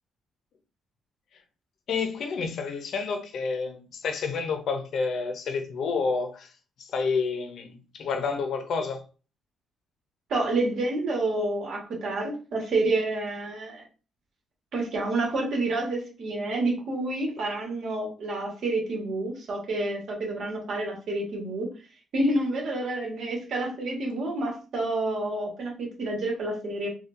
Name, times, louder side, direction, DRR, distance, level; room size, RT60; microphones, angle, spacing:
voice 1, 1.9-6.5 6.8-9.0, left 4 dB, 65° left, 0.6 m, -29 dB
voice 2, 10.3-13.8 14.7-21.7 22.1-26.9, right 2 dB, 65° right, 1.3 m, -28 dB
4.2 x 2.3 x 2.5 m
cardioid pair, 90°, 0 cm